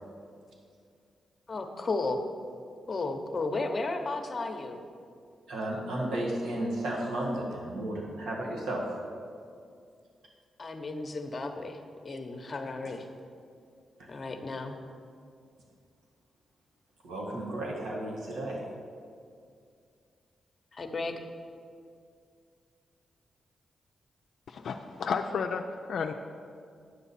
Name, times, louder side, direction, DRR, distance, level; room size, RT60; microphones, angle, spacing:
voice 1, 1.5-2.2 2.9-4.8 10.6-13.1 14.1-14.8 20.7-21.1, left 3 dB, 35° left, 6 dB, 0.8 m, -34 dB
voice 2, 5.5-9.0 17.0-18.6, right 1 dB, 85° right, -2 dB, 1.5 m, -33 dB
voice 3, 24.5-26.1, left 5 dB, 70° left, 4 dB, 0.4 m, -32 dB
9.7 x 7.0 x 4.2 m, 2.3 s
cardioid pair, 95°, 0 cm